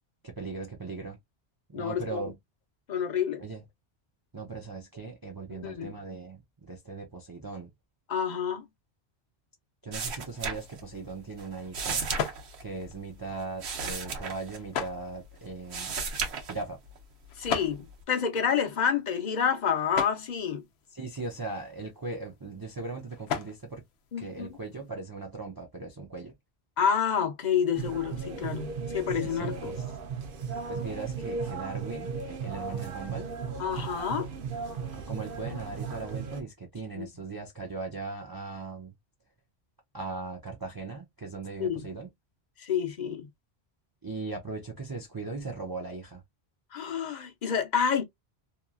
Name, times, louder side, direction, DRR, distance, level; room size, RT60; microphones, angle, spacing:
voice 1, 0.2-1.2 1.7-2.4 3.4-3.6 4.3-7.7 9.8-12.1 12.6-15.9 16.4-16.8 20.9-23.8 24.2-26.3 29.2-29.8 30.7-33.3 34.9-38.9 39.9-42.1 44.0-46.2, right 3 dB, 30° right, 0.5 m, -39 dB
voice 2, 1.7-2.3 2.9-3.4 5.5-5.9 8.1-8.7 17.4-20.6 24.1-24.6 26.8-29.7 33.6-34.3 36.9-37.1 41.6-41.9 42.6-43.3 46.7-48.0, left 7 dB, 50° left, 0.7 m, -29 dB
sound 1, 9.9-11.1 11.4-15.2 15.5-17.0 17.4-18.0, right 4 dB, 90° right, 1.1 m, -35 dB
sound 2, 10.5-24.9, left 7 dB, 80° left, 0.8 m, -41 dB
sound 3, 27.7-36.4, right 5 dB, 60° right, 0.8 m, -36 dB
2.9 x 2.3 x 2.4 m
omnidirectional pair, 1.1 m